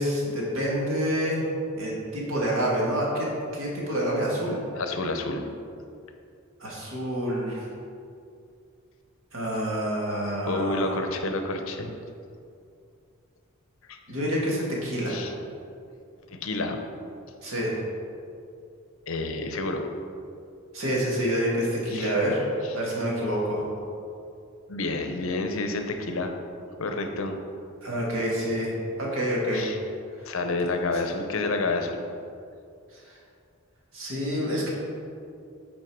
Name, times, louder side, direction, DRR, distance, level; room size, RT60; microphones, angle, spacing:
voice 1, 0.0-1.4 1.7-4.6 6.6-7.7 9.3-11.0 14.1-15.3 17.4-17.8 20.7-22.4 22.7-23.6 27.8-29.7 30.2-30.3 32.9-33.0 33.9-34.7, equal, 70° right, -4 dB, 1.9 m, -27 dB
voice 2, 4.8-5.4 10.5-11.9 13.9-14.0 15.1-15.3 16.3-16.8 19.1-19.9 21.9-22.1 24.7-26.3 26.8-27.4 29.5-29.8 30.3-32.1, left 2 dB, 75° left, 5 dB, 0.7 m, -29 dB
8.8 x 4.5 x 4.7 m, 2.5 s
head